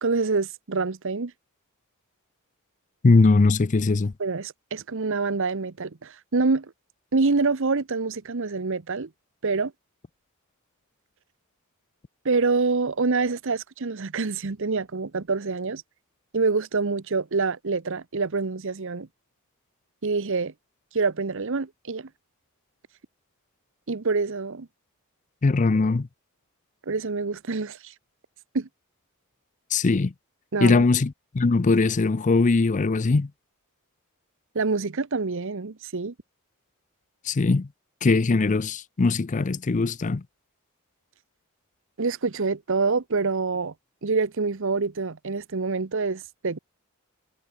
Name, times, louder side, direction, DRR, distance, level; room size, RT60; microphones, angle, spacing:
voice 1, 0.0-1.3 4.2-6.7 7.1-9.1 9.4-9.7 12.2-15.8 16.3-19.1 20.0-20.5 20.9-22.1 23.9-24.7 26.9-27.9 28.5-28.7 30.5-30.8 34.5-36.1 42.0-43.7 44.0-46.6, right 4 dB, 60° right, 0.9 m, -26 dB
voice 2, 3.0-4.1 25.4-26.1 29.7-30.1 30.6-33.3 37.2-37.7 38.0-40.2, left 3 dB, 35° left, 0.5 m, -21 dB
head